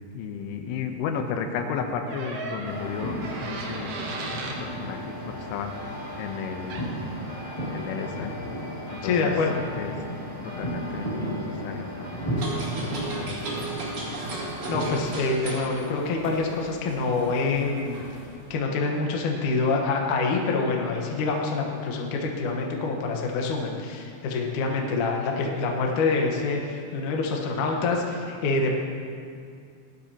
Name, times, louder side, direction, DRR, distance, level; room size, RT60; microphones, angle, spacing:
voice 1, 0.0-3.9 4.6-5.8 6.2-6.9 7.6-8.3 8.9-9.3 9.7-9.9 10.4-12.2 12.8-13.4, left 6 dB, 85° left, 5 dB, 3.3 m, -33 dB
sound 1, 2.1-4.6 6.7-6.9, right 3 dB, 75° right, 3.2 m, -36 dB
sound 2, 2.6-15.1, equal, 30° left, 0.5 m, -34 dB
voice 2, 9.0-9.6 14.7-18.0 18.5-28.7, left 3 dB, 70° left, 0 dB, 1.9 m, -26 dB
sound 3, 12.4-18.5, right 3 dB, 45° right, 3.0 m, -36 dB
18.0 x 12.0 x 2.9 m, 2.3 s
omnidirectional pair, 5.4 m